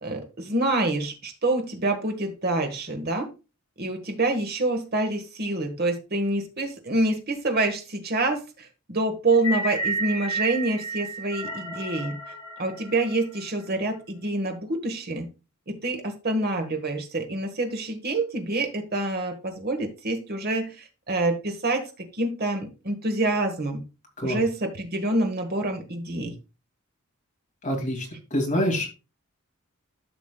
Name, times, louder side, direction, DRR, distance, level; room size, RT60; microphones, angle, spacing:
voice 1, 0.0-3.3 3.8-12.2 12.6-15.3 15.7-23.9 24.2-26.3, right 2 dB, 45° right, 5 dB, 1.4 m, -27 dB
sound 1, 9.3-13.6, right 2 dB, 15° left, 3.2 m, -32 dB
voice 2, 27.6-28.9, equal, 35° left, 1 dB, 2.5 m, -26 dB
12.5 x 6.0 x 2.3 m, 0.30 s
head